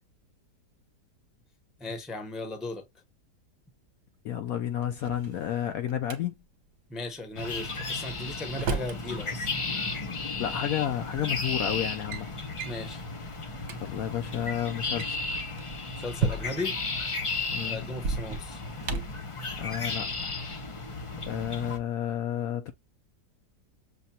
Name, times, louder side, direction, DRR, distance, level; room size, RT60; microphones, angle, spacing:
voice 1, 1.8-2.8 6.9-9.5 12.6-13.0 16.0-16.7 17.6-18.6, left 2 dB, ahead, 0.6 m, -36 dB
voice 2, 4.2-6.3 10.4-12.3 13.8-15.3 17.5-17.9 19.6-20.3 21.2-22.7, left 10 dB, 70° left, 0.9 m, -31 dB
Drawer open or close, 4.8-6.2 7.9-9.0 10.3-10.4 11.2-11.5 11.8-12.2 12.6-12.8 13.3-13.4 13.6-13.8 14.8-16.8 17.9-19.2, right 4 dB, 60° right, 1.2 m, -34 dB
sound 1, 7.3-21.8, left 3 dB, 50° left, 0.3 m, -34 dB
6.5 x 2.2 x 2.7 m
omnidirectional pair, 1.8 m